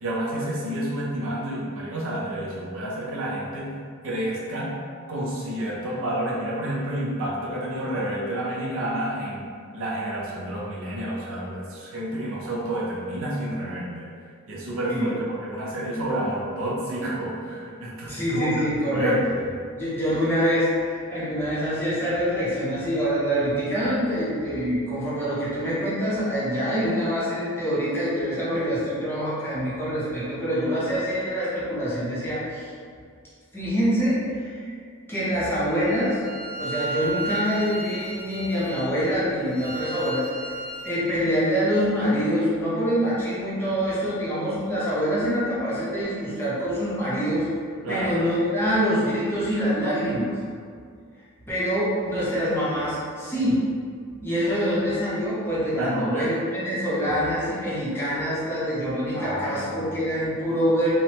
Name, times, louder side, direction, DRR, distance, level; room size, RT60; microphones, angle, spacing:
voice 1, 0.0-3.7 4.0-4.7 5.1-9.5 9.7-14.1 14.5-18.6 18.9-19.2 47.8-48.1 55.7-56.3 59.1-59.9, right 1 dB, 65° right, -5 dB, 0.6 m, -29 dB
voice 2, 18.1-19.2 19.7-32.7 33.5-34.7 35.1-36.2 36.6-40.5 40.8-47.4 47.9-50.3 51.5-53.6 54.2-60.9, equal, 10° left, -9 dB, 0.6 m, -25 dB
Bowed string instrument, 35.7-41.1, right 3 dB, 35° left, 0.8 m, -34 dB
3.1 x 2.0 x 2.9 m, 2.1 s
head